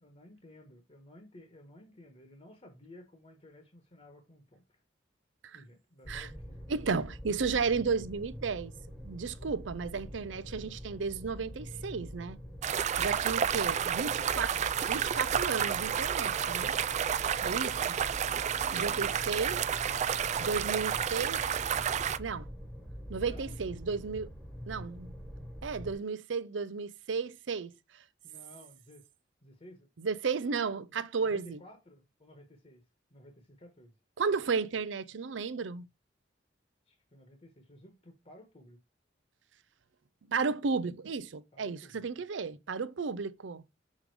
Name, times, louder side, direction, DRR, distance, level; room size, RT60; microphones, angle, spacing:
voice 1, 0.0-4.8 5.5-7.0 19.1-19.3 19.6-20.0 23.2-23.5 28.2-29.1 29.4-29.9 31.2-32.8 33.1-33.9 36.9-38.8 41.5-42.1, left 1 dB, 35° left, 1.3 m, -55 dB
sound 1, 6.0-25.9, equal, ahead, 1.3 m, -45 dB
voice 2, 6.7-8.7 9.0-12.4 13.0-14.5 14.8-16.8 17.4-18.0 18.7-19.6 20.4-21.4 22.2-22.5 23.1-24.3 24.7-25.1 25.6-28.0 30.0-31.6 34.2-35.9 40.3-43.6, right 5 dB, 90° right, 0.6 m, -33 dB
sound 2, 12.6-22.2, right 8 dB, 40° right, 0.3 m, -30 dB
6.5 x 3.7 x 4.7 m
head